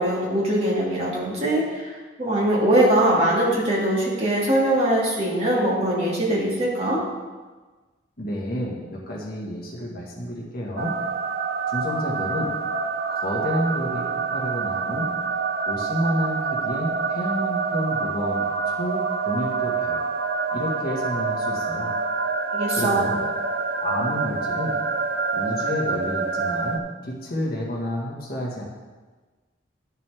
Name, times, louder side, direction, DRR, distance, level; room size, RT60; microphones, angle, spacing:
voice 1, 0.0-7.0 22.5-23.1, right 1 dB, 30° right, -6 dB, 2.3 m, -22 dB
voice 2, 8.2-10.9 11.7-12.6 13.1-15.1 15.6-20.0 20.5-21.9 22.7-23.2 23.8-24.8 25.3-28.6, equal, 50° left, -4 dB, 1.8 m, -30 dB
sound 1, 10.8-26.8, right 4 dB, 50° right, 0.6 m, -27 dB
12.5 x 6.7 x 3.6 m, 1.3 s
head